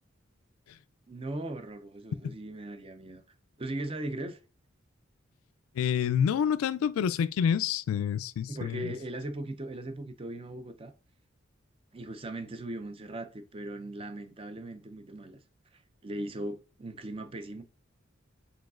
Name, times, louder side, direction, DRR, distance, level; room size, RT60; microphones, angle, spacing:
voice 1, 1.1-3.2 3.6-4.4 8.5-10.9 11.9-15.4 15.7-17.6, right 1 dB, 25° right, 0.5 m, -39 dB
voice 2, 5.8-8.9, left 8 dB, 85° left, 0.3 m, -28 dB
5.0 x 3.9 x 2.4 m
head